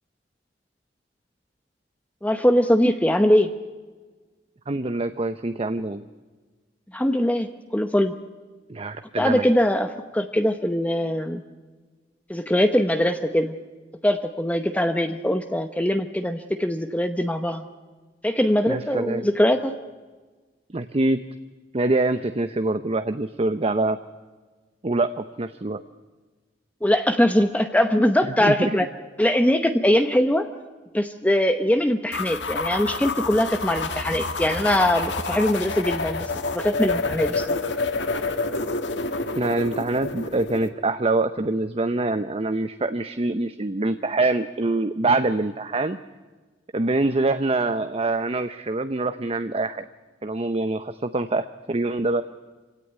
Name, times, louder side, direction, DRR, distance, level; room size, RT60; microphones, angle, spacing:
voice 1, 2.2-3.5 6.9-8.1 9.2-11.4 12.3-13.5 14.0-17.7 18.2-19.7 26.8-28.9 29.2-30.5 30.9-37.6, left 1 dB, 10° left, 7 dB, 0.9 m, -22 dB
voice 2, 4.7-6.0 8.7-9.5 18.7-19.3 20.7-21.2 21.7-24.0 24.8-25.8 28.2-28.8 39.4-46.0 46.7-49.9 50.2-52.2, right 2 dB, 35° right, 10 dB, 0.7 m, -25 dB
sound 1, 32.1-40.7, left 3 dB, 80° left, 1.7 m, -28 dB
26.5 x 17.0 x 9.7 m, 1.4 s
head